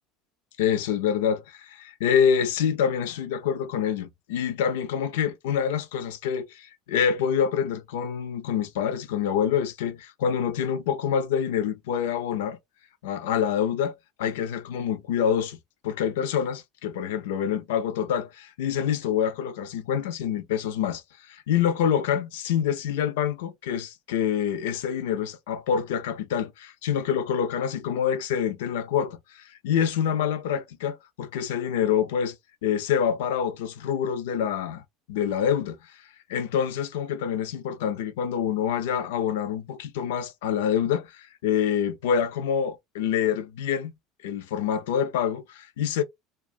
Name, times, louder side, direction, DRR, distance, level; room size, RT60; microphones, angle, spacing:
voice 1, 0.6-12.6 13.0-15.6 15.8-21.0 21.3-32.4 32.6-34.8 35.1-35.9 36.3-43.9 44.2-46.0, left 8 dB, 75° left, 0.4 m, -26 dB
2.4 x 2.3 x 2.4 m
hypercardioid pair, 80°, 0 cm